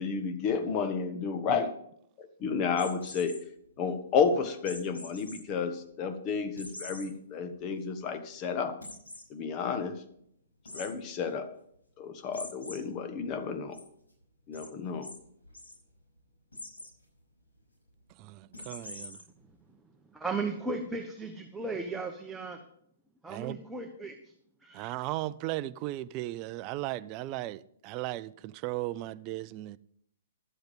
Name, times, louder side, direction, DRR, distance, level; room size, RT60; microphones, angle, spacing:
voice 1, 0.0-1.7 2.2-3.4 3.8-8.8 9.3-10.0 10.7-11.5 12.0-13.8 14.5-15.1, left 5 dB, 35° left, 1.4 m, -31 dB
sound 1, 2.7-3.4 4.6-5.4 5.8-5.9 6.6-7.1 7.5-7.6 7.9-8.0 8.8-9.2 10.6-10.9 12.3-12.8 13.2-13.8 14.5-14.7 15.0-15.1 15.4-15.7 16.5-16.9 18.5-19.2, left 2 dB, 90° left, 5.7 m, -44 dB
voice 2, 18.2-19.2 23.3-23.6 24.7-29.8, right 16 dB, 35° right, 0.4 m, -36 dB
voice 3, 20.1-22.6 23.2-24.1 24.6-24.9, right 3 dB, 5° right, 1.0 m, -36 dB
12.0 x 7.9 x 5.4 m
hypercardioid pair, 125°, 0 cm